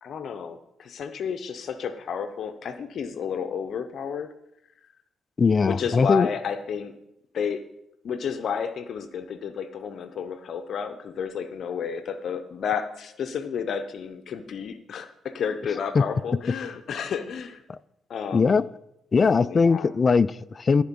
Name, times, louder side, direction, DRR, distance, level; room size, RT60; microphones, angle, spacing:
voice 1, 0.0-4.3 5.7-6.9 7.3-7.6 8.0-17.6 18.1-18.5 19.4-19.9, left 7 dB, 60° left, 0.7 m, -31 dB
voice 2, 5.4-6.3 15.9-16.0 17.7-17.8 18.3-18.7 19.1-20.8, left 5 dB, 35° left, 0.3 m, -20 dB
13.0 x 4.4 x 5.3 m
cardioid pair, 90°, 0 cm